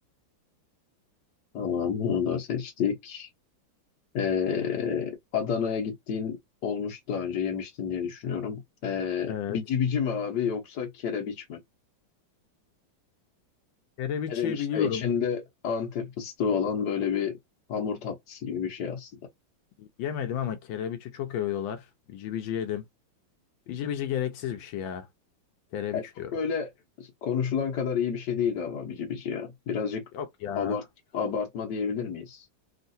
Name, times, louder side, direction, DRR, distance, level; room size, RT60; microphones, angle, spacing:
voice 1, 1.5-3.3 4.1-6.4 6.6-11.6 14.3-17.4 17.7-19.3 25.9-26.0 26.3-26.7 27.0-30.0 30.6-30.8 31.1-32.4, left 7 dB, 65° left, 1.4 m, -29 dB
voice 2, 9.3-9.6 14.0-15.1 19.8-22.9 23.7-25.1 25.7-26.3 30.1-30.8, left 9 dB, 80° left, 1.3 m, -32 dB
3.6 x 2.4 x 2.6 m
omnidirectional pair, 2.1 m